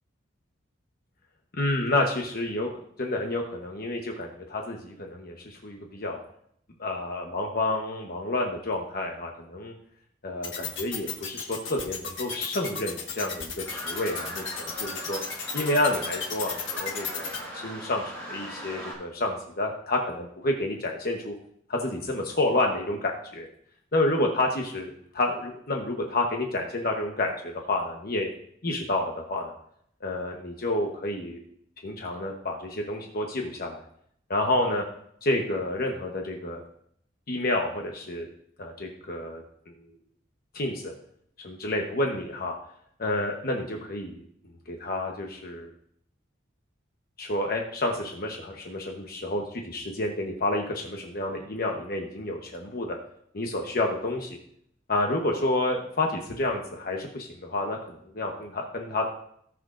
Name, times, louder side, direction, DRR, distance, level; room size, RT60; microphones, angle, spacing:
voice 1, 1.5-2.7 3.0-6.2 6.8-9.7 10.2-15.2 15.5-21.3 21.7-23.5 23.9-28.3 28.6-29.5 30.0-31.4 31.8-33.8 34.3-34.8 35.2-36.6 37.3-38.3 38.6-39.7 40.5-40.9 41.4-42.5 43.0-44.2 44.7-45.7 47.2-53.0 53.3-54.4 54.9-59.0, left 2 dB, 50° left, 1 dB, 1.1 m, -29 dB
sound 1, 10.4-17.4, left 7 dB, 75° left, 1.5 m, -33 dB
sound 2, 13.6-18.9, right 1 dB, 5° left, 4.3 m, -39 dB
18.5 x 6.3 x 2.5 m, 0.68 s
head